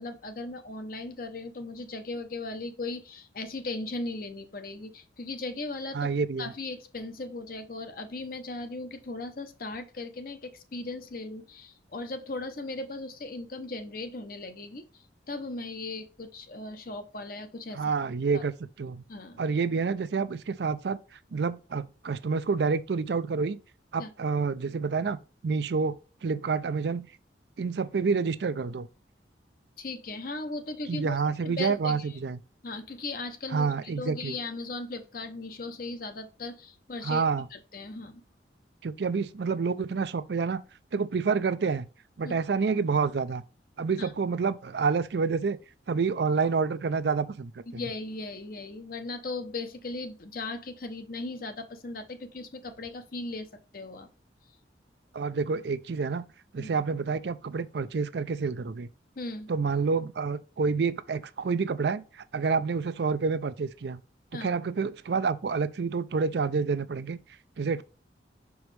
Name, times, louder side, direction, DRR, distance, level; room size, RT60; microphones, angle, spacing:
voice 1, 0.0-6.1 6.4-17.8 18.3-18.4 19.1-19.4 24.0-24.1 29.8-32.2 32.6-37.3 37.5-38.2 42.2-42.3 44.0-44.1 47.7-53.5 53.7-54.1 56.6-56.7 59.2-59.5 64.3-64.5, left 2 dB, 50° left, 0.8 m, -38 dB
voice 2, 5.9-6.5 17.7-18.5 18.8-19.0 19.4-21.0 21.3-23.6 23.9-25.2 25.4-27.1 27.6-28.9 30.9-32.4 33.5-34.4 37.0-37.5 38.8-40.6 40.9-41.9 42.2-43.4 43.8-45.6 45.9-47.8 55.1-56.2 56.5-58.9 59.5-64.0 64.4-67.2 67.6-67.8, right 5 dB, 65° right, 0.4 m, -28 dB
6.2 x 4.8 x 3.3 m
head